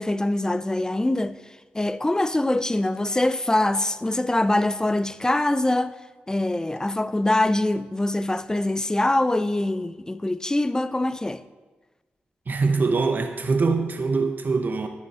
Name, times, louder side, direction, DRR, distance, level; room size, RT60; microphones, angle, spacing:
voice 1, 0.0-1.4 1.7-5.9 6.3-11.4, left 1 dB, 15° left, 0.5 m, -23 dB
voice 2, 12.5-14.9, right 4 dB, 50° right, 0.8 m, -23 dB
11.0 x 9.4 x 4.2 m
cardioid pair, 50°, 4 cm